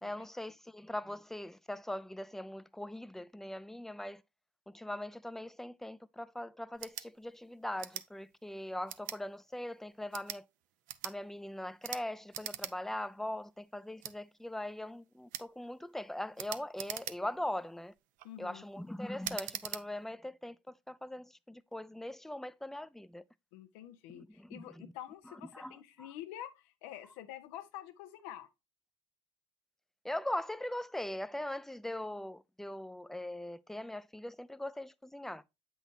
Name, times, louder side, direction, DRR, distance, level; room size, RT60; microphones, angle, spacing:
voice 1, 0.0-4.2 4.7-10.4 11.0-17.9 18.4-20.6 20.9-23.2 24.1-24.9 25.3-26.1 30.0-35.4, left 1 dB, 5° left, 0.5 m, -41 dB
sound 1, 6.7-7.1 7.8-8.1 8.9-9.2 10.0-10.4 10.9-11.2 11.8-12.0 12.3-12.7 13.1-13.2 14.0-14.2 15.3-15.5 16.4-17.4 18.0-18.3 19.2-19.8, right 13 dB, 70° right, 0.6 m, -41 dB
voice 2, 18.2-18.6 23.5-28.5, left 12 dB, 85° left, 1.0 m, -47 dB
7.8 x 6.0 x 2.7 m
supercardioid pair, 85°, 14 cm